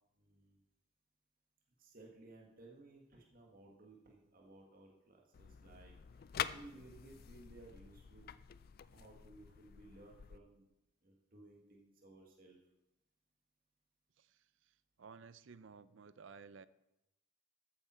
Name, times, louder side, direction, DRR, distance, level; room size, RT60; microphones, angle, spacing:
voice 1, 0.2-0.6 1.8-8.3 8.9-10.7 11.0-12.6, right 2 dB, 40° right, -1 dB, 1.7 m, -59 dB
sound 1, 5.3-10.4, left 9 dB, 45° left, 0.3 m, -46 dB
voice 2, 14.2-16.7, right 5 dB, 60° right, 16 dB, 0.4 m, -56 dB
13.5 x 8.7 x 4.4 m, 0.91 s
head